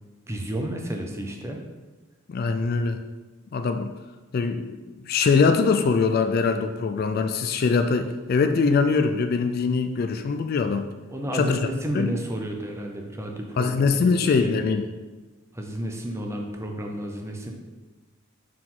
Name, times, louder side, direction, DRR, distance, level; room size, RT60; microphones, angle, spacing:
voice 1, 0.3-1.6 11.1-14.6 15.5-17.5, right 1 dB, 15° right, 2 dB, 0.6 m, -31 dB
voice 2, 2.3-3.0 3.5-3.9 4.3-4.8 5.1-10.9 11.3-11.6 11.9-12.1 13.6-14.9, left 4 dB, 45° left, 7 dB, 0.3 m, -22 dB
5.9 x 4.7 x 3.8 m, 1.2 s
head